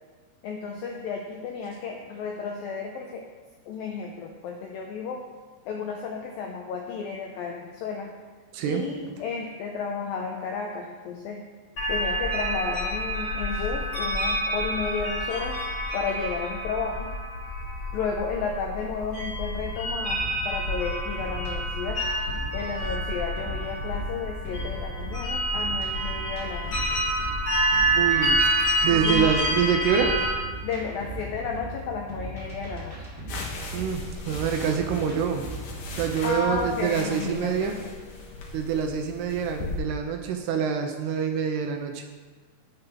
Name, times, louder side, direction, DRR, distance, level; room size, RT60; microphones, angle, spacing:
voice 1, 0.4-3.3 3.7-5.2 5.7-8.1 8.6-11.5 11.9-15.6 15.9-17.1 17.9-22.0 22.5-26.9 28.9-29.3 30.6-33.1 36.2-37.8, left 5 dB, 85° left, 1 dB, 2.0 m, -33 dB
voice 2, 8.5-8.9 28.0-28.4 28.8-30.2 33.7-35.5 36.0-37.8 38.5-42.0, right 7 dB, 75° right, 4 dB, 2.6 m, -26 dB
sound 1, 11.8-30.3, right 1 dB, 40° left, 2.4 m, -28 dB
sound 2, 19.2-36.7, right 2 dB, 30° right, 0.6 m, -38 dB
sound 3, 33.3-39.8, left 3 dB, 60° left, 2.5 m, -39 dB
11.0 x 8.0 x 5.8 m, 1.5 s
omnidirectional pair, 5.3 m